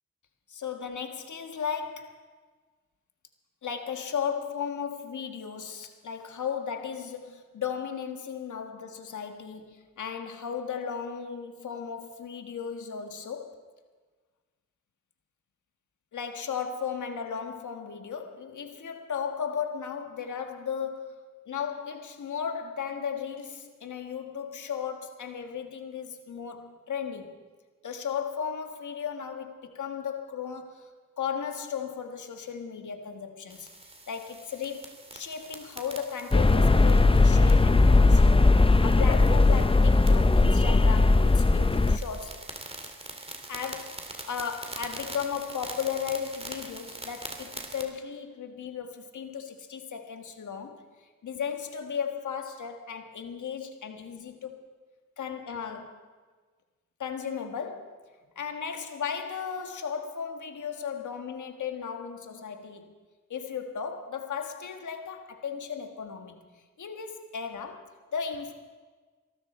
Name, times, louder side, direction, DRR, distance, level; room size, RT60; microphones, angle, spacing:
voice 1, 0.5-2.2 3.6-13.6 16.1-21.2 21.5-27.4 27.8-30.8 31.2-33.7 34.1-38.4 38.8-42.4 43.5-50.9 51.2-54.4 55.2-56.0 57.0-58.0 58.3-62.9 63.3-66.4 66.8-68.5, left 7 dB, 85° left, 5 dB, 1.6 m, -35 dB
sound 1, 33.5-47.8, right 2 dB, 20° right, 2.5 m, -44 dB
sound 2, 36.3-42.0, left 3 dB, 20° left, 0.6 m, -19 dB
23.5 x 13.5 x 4.4 m, 1.4 s
cardioid pair, 55°, 29 cm